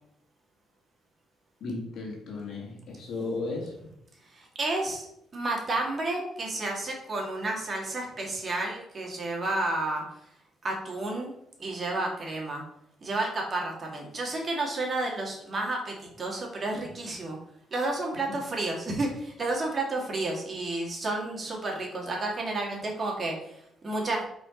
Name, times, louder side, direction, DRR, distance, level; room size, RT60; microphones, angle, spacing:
voice 1, 1.6-3.8, left 3 dB, 70° left, 0 dB, 2.0 m, -35 dB
voice 2, 4.2-5.1 5.3-10.3 10.6-11.3 11.6-12.6 13.0-17.4 17.7-24.2, right 2 dB, 35° right, -1 dB, 2.2 m, -31 dB
5.1 x 4.3 x 5.1 m, 0.76 s
cardioid pair, 90°, 0 cm